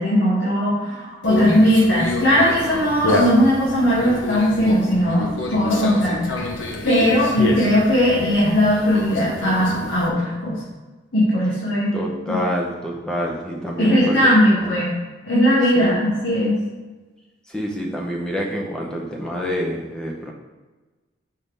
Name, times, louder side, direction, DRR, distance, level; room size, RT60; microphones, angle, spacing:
voice 1, 0.0-6.3 6.8-10.6 11.1-12.0 12.3-12.4 13.8-14.9 15.3-16.5, equal, 65° left, -9 dB, 1.9 m, -18 dB
Conversation, 1.2-10.1, left 1 dB, 80° left, 0.8 m, -28 dB
voice 2, 11.9-14.2 14.5-14.7 15.8-16.0 17.5-20.3, equal, 5° left, -2 dB, 0.8 m, -27 dB
5.8 x 5.6 x 3.5 m, 1.2 s
head